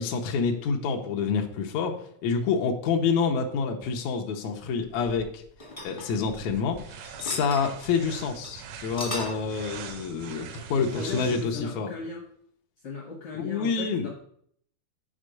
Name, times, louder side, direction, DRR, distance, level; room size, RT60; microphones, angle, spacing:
voice 1, 0.0-5.4 5.8-11.9 13.3-14.1, left 5 dB, 90° left, 1 dB, 1.6 m, -28 dB
sound 1, 5.0-6.8 7.0-7.6 8.0-8.1 8.4-8.5 8.8-9.5, left 1 dB, 50° left, 0.6 m, -37 dB
sound 2, 6.1-11.7, right 8 dB, 75° right, 2.0 m, -43 dB
voice 2, 10.8-12.3 12.8-14.1, left 4 dB, 70° left, -2 dB, 1.3 m, -37 dB
6.5 x 4.5 x 6.3 m, 0.66 s
omnidirectional pair, 4.3 m